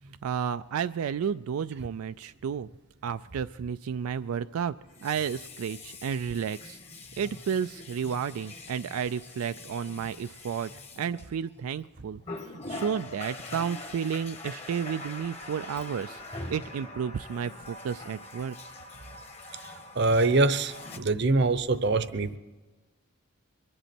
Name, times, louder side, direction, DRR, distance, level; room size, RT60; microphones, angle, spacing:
voice 1, 0.2-2.7 3.0-4.7 5.0-6.8 7.2-10.7 11.0-12.2 12.7-16.2 16.5-18.6, right 7 dB, 90° right, 11 dB, 0.3 m, -32 dB
Water tap faucet, 1.3-1.4 4.8-11.7 12.2-21.0, left 2 dB, 30° left, 1.3 m, -43 dB
voice 2, 20.0-22.4, right 3 dB, 55° right, 13 dB, 0.7 m, -24 dB
23.5 x 11.0 x 4.4 m, 1.2 s
head